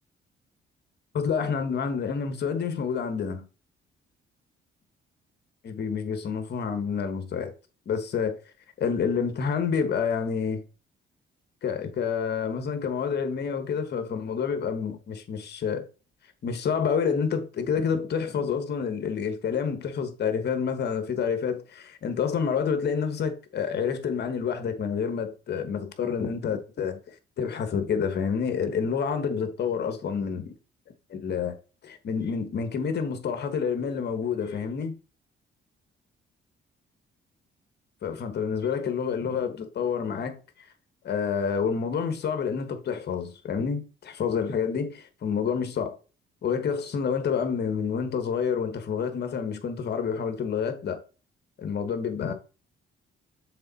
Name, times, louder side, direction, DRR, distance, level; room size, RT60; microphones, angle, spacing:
voice 1, 1.1-3.4 5.6-7.5 7.9-8.4 8.8-10.6 11.6-15.9 16.4-30.5 31.1-31.6 31.8-35.0 38.0-40.4 41.0-45.9 46.4-51.0 51.6-52.3, left 6 dB, 55° left, 1.3 m, -28 dB
6.8 x 3.8 x 4.1 m
cardioid pair, 90°, 20 cm